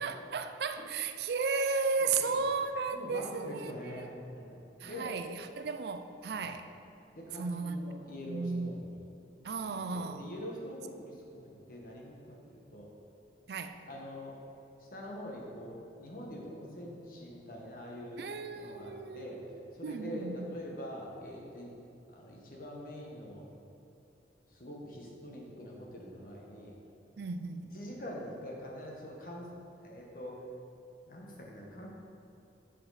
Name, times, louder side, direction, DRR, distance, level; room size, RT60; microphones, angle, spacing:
voice 1, 0.0-4.1 4.8-6.7 7.3-7.9 8.2-8.9 9.4-10.3 13.5-13.8 18.2-20.6 27.2-27.6, right 4 dB, 65° right, 8 dB, 0.4 m, -35 dB
voice 2, 2.0-2.4 2.9-4.6 4.8-5.1 6.3-6.5 7.1-9.0 9.6-12.8 13.9-14.3 14.9-18.2 18.5-19.4 19.8-21.7 22.1-23.5 24.5-26.7 27.7-29.5 29.8-30.4 31.1-31.9, equal, 50° left, -2 dB, 1.3 m, -44 dB
7.7 x 6.3 x 4.1 m, 2.7 s
head